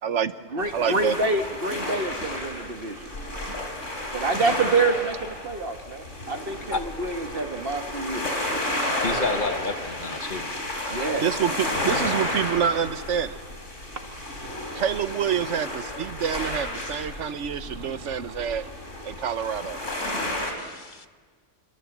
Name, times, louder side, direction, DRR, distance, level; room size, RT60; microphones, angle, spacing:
voice 1, 0.0-0.3 0.7-1.2 11.2-13.4 14.7-18.7 19.0-19.8, right 8 dB, 75° right, 13 dB, 1.3 m, -27 dB
voice 2, 0.5-3.1 4.1-8.3 10.9-11.3, right 3 dB, 50° right, 5 dB, 2.0 m, -27 dB
sound 1, 0.6-20.5, left 1 dB, 85° left, 4.5 m, -32 dB
voice 3, 9.0-10.5 20.6-21.1, left 3 dB, 40° left, 8 dB, 1.4 m, -30 dB
29.0 x 23.0 x 7.4 m, 1.4 s
omnidirectional pair, 1.2 m